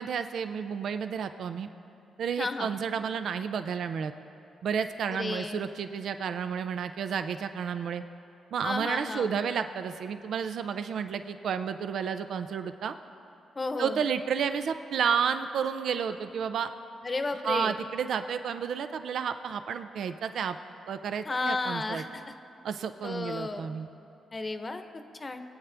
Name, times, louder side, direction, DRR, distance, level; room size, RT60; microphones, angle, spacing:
voice 1, 0.0-1.7 2.2-4.1 4.6-8.0 8.5-13.0 13.8-16.7 17.4-20.6 20.9-22.0 22.6-23.9, right 7 dB, 70° right, 10 dB, 0.5 m, -31 dB
voice 2, 2.4-2.7 5.1-5.7 8.6-9.3 13.5-14.0 17.0-17.7 21.2-22.2 23.0-23.7 24.3-25.4, left 3 dB, 30° left, 8 dB, 0.9 m, -33 dB
23.0 x 8.8 x 3.4 m, 2.7 s
cardioid pair, 85°, 0 cm